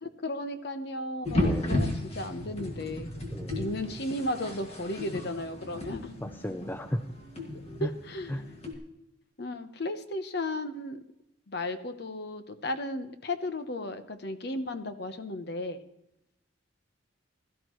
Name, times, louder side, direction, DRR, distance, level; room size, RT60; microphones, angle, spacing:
voice 1, 0.0-3.1 3.6-6.2 7.8-8.4 9.4-11.0 11.5-15.8, left 1 dB, 55° left, 10 dB, 0.9 m, -35 dB
sound 1, 1.2-8.7, left 1 dB, 30° left, 2.0 m, -34 dB
voice 2, 1.3-1.9 3.3-3.6 6.2-7.0 7.8-7.9 8.3-8.4, equal, 10° left, 9 dB, 0.4 m, -34 dB
17.0 x 13.0 x 3.1 m, 0.86 s
head